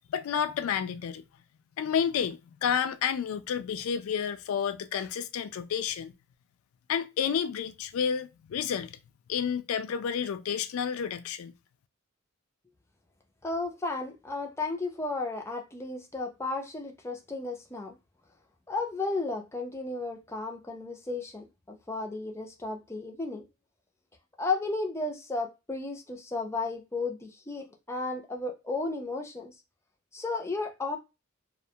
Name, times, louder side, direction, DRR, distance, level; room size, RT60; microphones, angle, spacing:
voice 1, 0.1-1.2 1.8-6.1 6.9-9.0 9.3-11.5, left 7 dB, 75° left, 0.3 m, -30 dB
voice 2, 13.4-18.0 18.7-23.4 24.4-29.5 30.1-31.0, left 3 dB, 15° left, 0.4 m, -34 dB
2.4 x 2.2 x 2.7 m
head